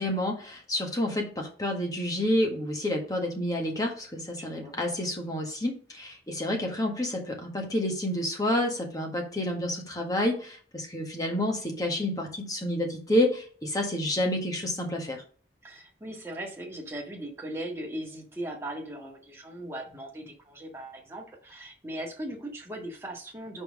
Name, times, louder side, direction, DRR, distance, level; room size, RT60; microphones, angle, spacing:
voice 1, 0.0-15.2, left 1 dB, 20° left, 1 dB, 1.6 m, -29 dB
voice 2, 4.4-4.8 15.6-23.6, right 1 dB, 15° right, -1 dB, 1.7 m, -39 dB
5.5 x 4.4 x 6.2 m, 0.43 s
head